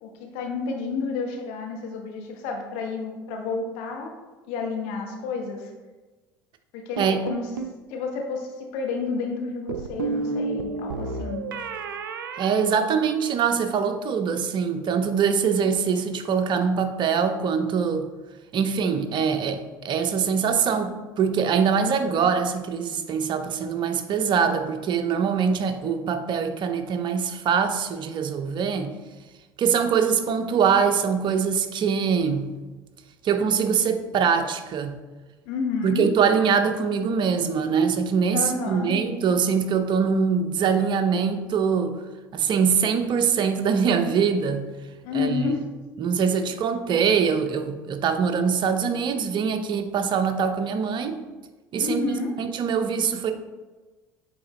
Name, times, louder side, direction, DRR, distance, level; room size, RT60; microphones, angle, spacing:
voice 1, 0.0-4.1 4.5-5.7 6.7-7.5 7.9-11.5 35.4-36.1 38.3-39.0 45.0-45.6 47.0-47.1 51.8-52.3, left 4 dB, 65° left, 1 dB, 1.1 m, -30 dB
sound 1, 7.0-7.8 9.7-13.5, right 4 dB, 80° right, 0.4 m, -32 dB
voice 2, 12.4-18.1 18.5-28.9 29.6-32.5 33.2-35.0 35.8-42.0 42.3-44.7 45.1-45.5 46.0-51.2 51.7-53.3, right 6 dB, 45° right, 7 dB, 0.7 m, -23 dB
8.5 x 3.8 x 3.1 m, 1.2 s
hypercardioid pair, 65°, 11 cm